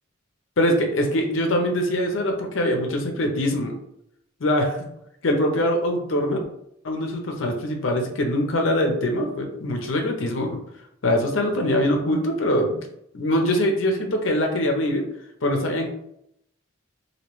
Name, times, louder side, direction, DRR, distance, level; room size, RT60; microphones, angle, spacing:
voice 1, 0.6-3.8 4.4-4.8 5.2-6.4 6.8-10.6 11.0-12.8 13.1-15.1 15.4-15.9, left 1 dB, 85° left, 3 dB, 0.7 m, -23 dB
3.0 x 2.7 x 3.0 m, 0.76 s
head